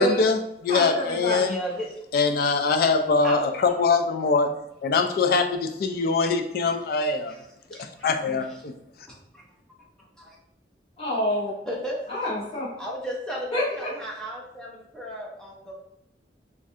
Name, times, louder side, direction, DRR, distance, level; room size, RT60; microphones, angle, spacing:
voice 1, 0.0-1.6 2.1-4.5 4.8-7.3 8.0-8.7, left 4 dB, 55° left, 7 dB, 0.3 m, -23 dB
voice 2, 0.7-1.5 11.0-11.5 12.1-12.7 13.5-13.6, equal, 35° left, -10 dB, 1.2 m, -27 dB
voice 3, 1.4-1.9 3.2-3.5 7.3-8.2 8.4-8.6 9.3-9.5 10.0-10.4 11.7-12.1 12.8-15.7, equal, 5° left, -3 dB, 0.6 m, -35 dB
3.1 x 2.5 x 2.7 m, 0.82 s
head